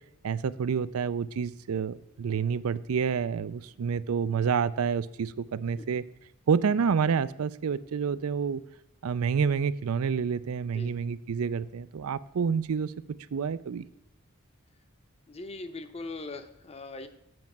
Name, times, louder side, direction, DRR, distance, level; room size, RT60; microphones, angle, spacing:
voice 1, 0.2-6.0 6.5-8.6 9.0-12.9 13.3-13.8, right 6 dB, 80° right, 16 dB, 0.4 m, -28 dB
voice 2, 15.3-17.1, left 2 dB, 30° left, 9 dB, 0.7 m, -40 dB
7.8 x 5.2 x 7.3 m, 0.86 s
head